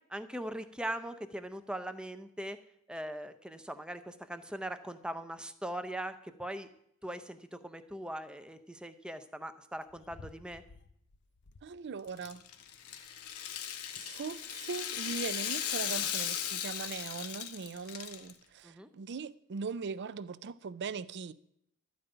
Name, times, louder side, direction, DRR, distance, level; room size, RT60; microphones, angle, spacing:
voice 1, 0.1-2.6 2.9-6.7 7.0-10.6 18.6-18.9, right 1 dB, 5° right, 0.6 m, -40 dB
sound 1, 9.8-11.8 12.2-13.1 13.4-14.3 14.7-14.8 15.5-15.6 15.8-16.2 16.7-16.9 17.4-17.5, left 4 dB, 50° left, 0.6 m, -56 dB
voice 2, 11.6-12.4 14.0-21.3, right 5 dB, 50° right, 0.5 m, -40 dB
Rattle (instrument), 12.1-18.3, left 9 dB, 75° left, 1.0 m, -37 dB
12.0 x 5.2 x 8.9 m
head